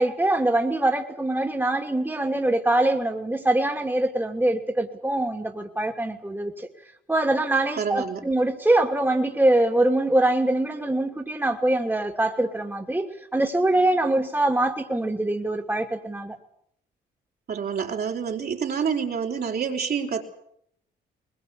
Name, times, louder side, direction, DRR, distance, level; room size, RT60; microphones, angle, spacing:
voice 1, 0.0-6.7 7.1-16.4, right 1 dB, 10° right, 3 dB, 2.8 m, -23 dB
voice 2, 7.8-8.2 17.5-20.2, right 6 dB, 55° right, 2 dB, 4.7 m, -27 dB
21.0 x 21.0 x 8.7 m, 0.69 s
supercardioid pair, 70°, 19 cm